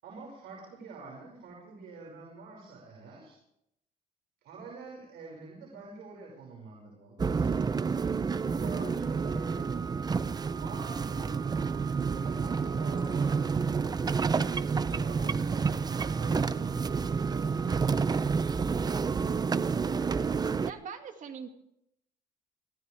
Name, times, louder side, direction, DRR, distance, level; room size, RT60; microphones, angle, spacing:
voice 1, 0.0-3.4 4.4-7.5 8.5-9.7 10.5-14.1 14.6-18.1, right 3 dB, 75° right, -2 dB, 6.0 m, -46 dB
sound 1, 7.2-20.7, right 5 dB, 25° right, 0.6 m, -29 dB
voice 2, 20.6-21.5, right 6 dB, 50° right, 5 dB, 2.4 m, -42 dB
24.5 x 16.0 x 3.5 m, 0.77 s
cardioid pair, 110°, 17 cm